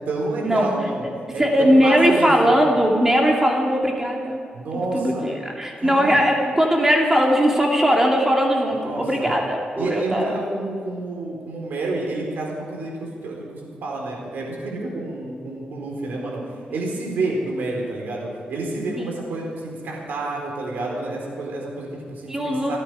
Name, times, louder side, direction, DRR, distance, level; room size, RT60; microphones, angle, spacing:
voice 1, 0.1-1.1 1.3-2.6 4.5-5.3 5.8-6.1 8.7-9.3 9.8-16.4 16.7-22.8, right 2 dB, 85° right, -1 dB, 4.2 m, -29 dB
voice 2, 1.4-4.4 4.7-10.3 19.0-19.2 22.3-22.8, equal, 15° right, 0 dB, 2.4 m, -19 dB
28.0 x 9.8 x 4.8 m, 2.2 s
cardioid pair, 100°, 3 cm